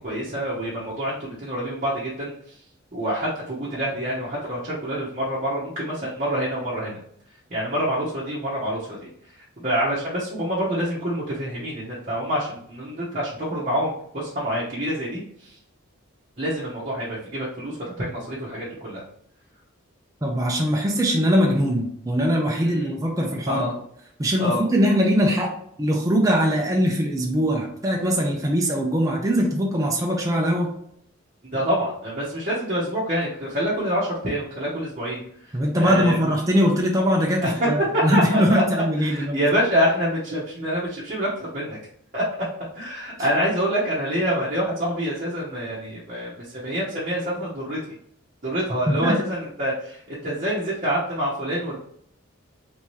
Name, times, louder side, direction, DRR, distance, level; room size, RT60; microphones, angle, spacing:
voice 1, 0.0-2.6 2.9-7.0 7.5-9.1 9.6-15.5 16.4-19.0 22.5-22.9 23.5-23.7 24.4-24.6 31.5-36.2 37.4-38.4 39.0-41.8 42.1-42.2 42.7-48.0 48.4-51.8, equal, 35° right, -7 dB, 0.9 m, -26 dB
voice 2, 20.2-23.7 24.2-25.5 25.8-30.7 35.5-39.4 48.9-49.2, equal, 15° right, -1 dB, 0.5 m, -21 dB
3.5 x 2.8 x 3.1 m, 0.69 s
head